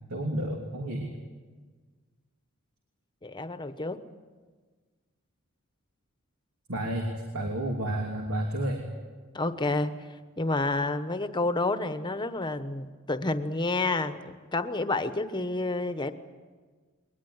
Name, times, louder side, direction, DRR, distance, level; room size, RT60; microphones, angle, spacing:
voice 1, 0.1-1.1 6.7-7.1 7.3-8.8, right 1 dB, 85° right, 2 dB, 3.1 m, -30 dB
voice 2, 3.2-4.0 9.3-9.9 10.4-16.1, left 2 dB, 20° left, 10 dB, 1.0 m, -29 dB
21.5 x 20.0 x 9.5 m, 1.4 s
head